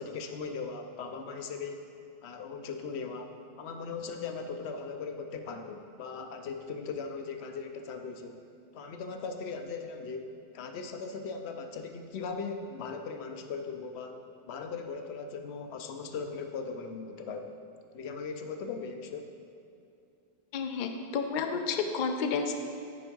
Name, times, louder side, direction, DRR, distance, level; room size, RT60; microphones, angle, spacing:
voice 1, 0.0-1.9 2.2-8.4 8.7-17.5 17.9-19.3, left 5 dB, 80° left, 6 dB, 0.9 m, -39 dB
voice 2, 20.5-22.5, left 5 dB, 60° left, 5 dB, 0.6 m, -31 dB
9.2 x 3.4 x 5.3 m, 2.6 s
omnidirectional pair, 1.1 m